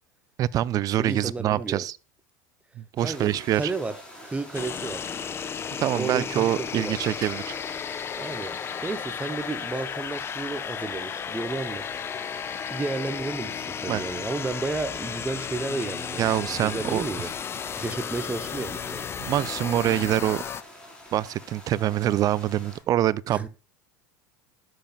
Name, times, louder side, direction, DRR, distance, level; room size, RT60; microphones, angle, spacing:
voice 1, 0.4-2.0 2.8-3.7 5.8-7.5 13.9-14.0 16.2-17.0 19.2-20.4 21.1-23.5, right 12 dB, 40° right, 0.4 m, -25 dB
voice 2, 1.0-1.8 3.0-3.9 4.2-5.0 5.9-7.0 8.1-12.0 12.7-17.3 17.7-19.0 23.3-23.5, right 3 dB, 15° right, 0.7 m, -32 dB
sound 1, 3.0-22.8, left 1 dB, 10° left, 4.1 m, -47 dB
sound 2, 4.5-20.6, left 7 dB, 25° left, 0.4 m, -34 dB
11.5 x 7.7 x 2.3 m
hypercardioid pair, 85°, 10 cm